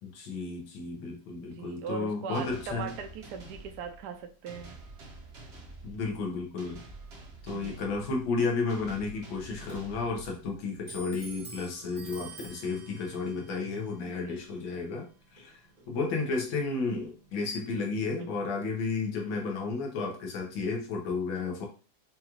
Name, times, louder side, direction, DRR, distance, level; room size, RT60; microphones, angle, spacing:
voice 1, 0.0-2.9 5.8-6.8 7.4-15.1 15.3-15.6 15.9-21.7, left 4 dB, 90° left, 1 dB, 1.7 m, -32 dB
voice 2, 1.4-4.7 7.5-7.8 9.5-9.6 14.0-14.4 17.4-17.5 18.2-18.3, right 6 dB, 70° right, 5 dB, 1.1 m, -40 dB
sound 1, 2.3-10.8, right 2 dB, 50° right, 0.8 m, -48 dB
Clock, 9.1-18.4, right 3 dB, 85° right, 0.3 m, -51 dB
5.0 x 2.4 x 3.0 m, 0.35 s
omnidirectional pair, 2.1 m